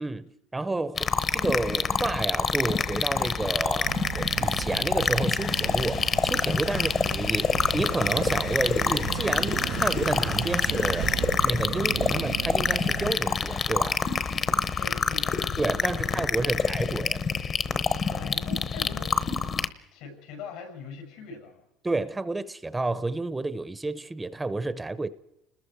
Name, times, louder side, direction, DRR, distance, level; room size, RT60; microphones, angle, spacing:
voice 1, 0.0-11.1 11.4-14.0 15.6-17.2 21.8-25.1, right 2 dB, 10° right, 0.7 m, -30 dB
sound 1, 1.0-19.7, left 5 dB, 30° left, 1.0 m, -27 dB
sound 2, 3.8-13.1, right 12 dB, 70° right, 1.1 m, -35 dB
sound 3, 5.4-11.3, left 8 dB, 45° left, 1.5 m, -43 dB
voice 2, 14.8-15.4 15.9-16.7 18.1-19.2 19.9-21.7, left 5 dB, 80° left, 7.2 m, -42 dB
29.5 x 20.5 x 4.7 m
cardioid pair, 145°, 0 cm